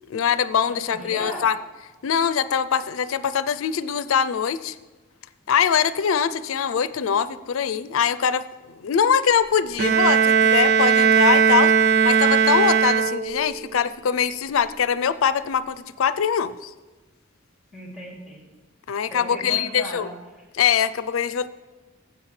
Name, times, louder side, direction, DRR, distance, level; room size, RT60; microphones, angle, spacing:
voice 1, 0.1-1.6 2.0-4.8 5.5-16.7 18.9-20.1 20.5-21.5, left 7 dB, 85° left, 15 dB, 0.4 m, -23 dB
voice 2, 0.7-1.5 17.7-18.4 19.1-20.4, left 1 dB, 5° right, -3 dB, 2.7 m, -36 dB
Bowed string instrument, 9.8-13.6, right 7 dB, 50° right, 0.4 m, -18 dB
16.0 x 7.7 x 3.2 m, 1.2 s
head